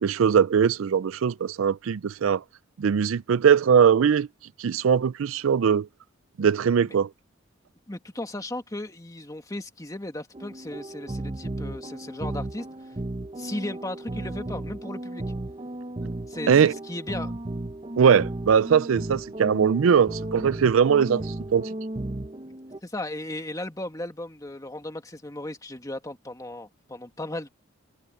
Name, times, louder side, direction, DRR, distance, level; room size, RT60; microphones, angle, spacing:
voice 1, 0.0-2.4 2.8-4.3 4.6-5.9 6.4-7.1 16.5-16.7 18.0-21.2 21.5-21.7, right 7 dB, 90° right, 0.4 m, -20 dB
voice 2, 7.9-12.7 13.4-15.2 16.3-17.3 22.8-27.5, left 1 dB, 20° left, 2.0 m, -36 dB
sound 1, 10.3-22.8, right 1 dB, 30° right, 0.8 m, -35 dB
head